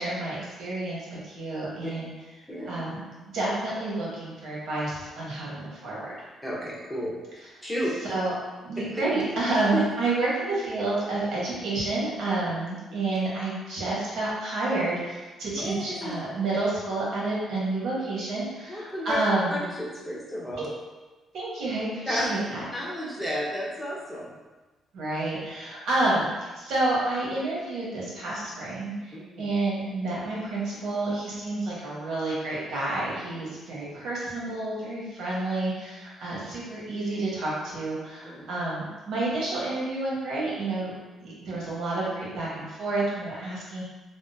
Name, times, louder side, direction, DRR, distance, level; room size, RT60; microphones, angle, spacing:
voice 1, 0.0-2.1 2.7-3.0 3.3-6.1 8.1-8.3 8.6-19.6 20.6-20.7 21.3-22.6 24.9-40.9 41.2-43.8, right 2 dB, 75° right, -6 dB, 1.2 m, -29 dB
voice 2, 6.4-7.1 7.6-7.9 9.7-9.8 12.9-13.0 15.5-16.2 18.7-19.2 19.5-20.7 22.1-22.3 22.7-24.3 29.1-29.5 38.2-38.5, equal, 5° left, -5 dB, 0.9 m, -32 dB
3.5 x 2.1 x 2.7 m, 1.2 s
cardioid pair, 90°, 0 cm